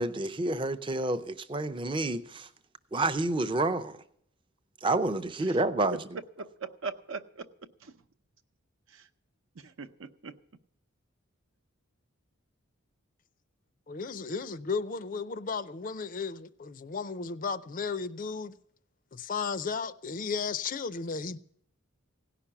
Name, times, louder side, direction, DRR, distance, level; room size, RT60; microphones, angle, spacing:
voice 1, 0.0-2.5 2.9-4.0 4.8-6.0, right 2 dB, 25° right, 0.5 m, -29 dB
voice 2, 6.4-7.5 7.8-7.9 8.9-9.0 9.6-10.3, right 4 dB, 70° right, 0.7 m, -40 dB
voice 3, 13.9-18.5 19.1-21.4, left 5 dB, 40° left, 0.4 m, -34 dB
17.0 x 5.8 x 9.8 m
head